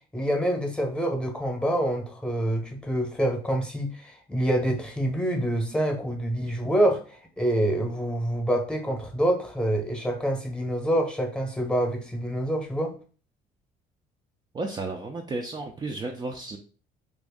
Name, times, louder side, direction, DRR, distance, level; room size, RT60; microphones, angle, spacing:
voice 1, 0.1-12.9, right 1 dB, 5° left, 3 dB, 0.9 m, -26 dB
voice 2, 14.5-16.6, right 2 dB, 25° right, 2 dB, 0.4 m, -33 dB
3.0 x 2.6 x 3.5 m, 0.39 s
cardioid pair, 110°, 17 cm